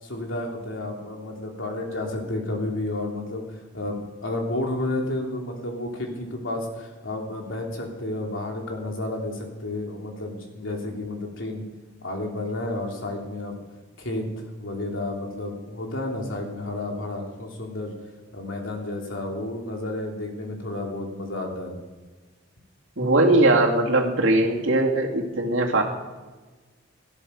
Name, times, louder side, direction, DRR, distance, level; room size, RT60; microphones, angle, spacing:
voice 1, 0.0-11.6 12.0-13.6 14.0-17.9 18.3-21.8, left 2 dB, 85° left, 1 dB, 3.2 m, -31 dB
voice 2, 23.0-25.8, right 2 dB, 85° right, 0 dB, 2.4 m, -20 dB
13.5 x 12.5 x 5.3 m, 1.3 s
head